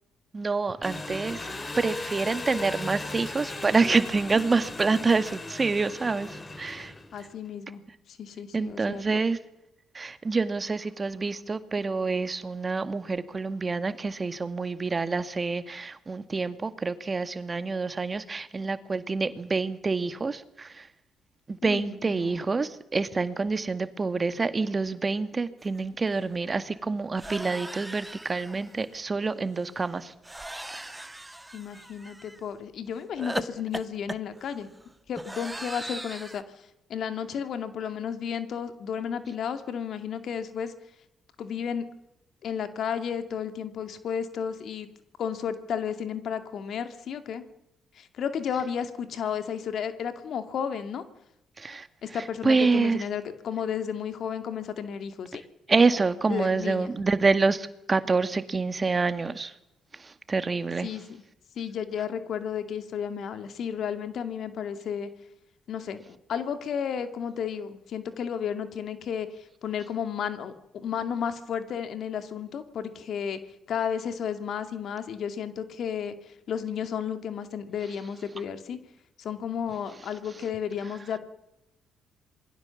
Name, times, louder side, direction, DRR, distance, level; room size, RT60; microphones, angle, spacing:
voice 1, 0.3-1.5 1.8-6.9 8.5-9.4 9.9-20.9 21.5-30.1 30.7-31.1 51.6-53.0 55.7-59.5 59.9-60.9, right 4 dB, 35° right, 11 dB, 2.0 m, -27 dB
Engine, 0.8-7.3, left 2 dB, 30° left, 3.4 m, -37 dB
voice 2, 7.1-9.2 21.6-22.4 31.5-34.7 35.1-40.7 41.4-41.9 42.4-44.9 45.2-47.4 47.9-51.0 52.0-55.4 56.3-56.9 60.8-61.0 61.6-65.1 65.7-73.4 73.7-78.8 79.2-81.2, left 8 dB, 60° left, 9 dB, 2.4 m, -33 dB
sound 1, 25.8-25.9 26.1-26.3 27.2-28.8 30.2-32.4 33.2-36.4, right 1 dB, 10° right, 1.6 m, -39 dB
27.0 x 21.5 x 7.2 m, 0.87 s
hypercardioid pair, 50°, 0 cm